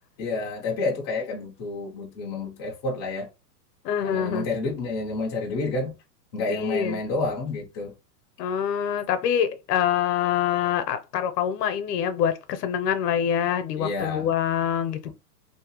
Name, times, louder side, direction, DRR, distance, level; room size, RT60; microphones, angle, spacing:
voice 1, 0.2-3.3 4.0-5.9 6.3-7.9 13.7-14.3 15.0-15.1, left 3 dB, 20° left, 0.4 m, -29 dB
voice 2, 3.8-4.5 6.5-7.0 8.4-15.1, left 9 dB, 75° left, 0.8 m, -25 dB
2.7 x 2.1 x 2.9 m
supercardioid pair, 150°, 49 cm